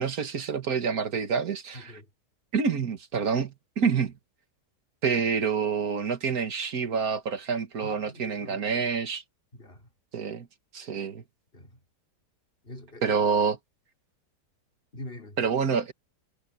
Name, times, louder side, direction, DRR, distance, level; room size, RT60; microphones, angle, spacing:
voice 1, 0.0-1.9 2.5-4.1 5.0-9.2 10.1-10.5 10.7-11.2 13.0-13.6 15.4-15.9, right 6 dB, 60° right, 2.1 m, -27 dB
voice 2, 1.7-2.1 7.8-8.7 9.5-9.9 11.5-11.8 12.6-13.2 14.9-15.4, left 1 dB, 35° left, 4.0 m, -44 dB
omnidirectional pair, 1.8 m